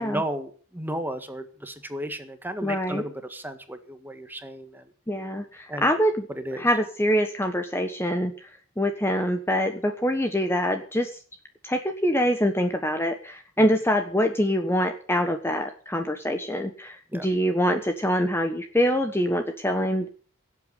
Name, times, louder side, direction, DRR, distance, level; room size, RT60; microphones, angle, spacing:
voice 1, 0.0-4.8 5.7-5.9 6.3-6.7 17.1-17.3, right 1 dB, 10° right, 9 dB, 1.7 m, -34 dB
voice 2, 2.6-3.0 5.1-6.3 6.6-8.5 8.8-11.2 11.6-20.1, equal, 10° left, 6 dB, 1.2 m, -25 dB
17.5 x 8.3 x 8.3 m, 0.43 s
head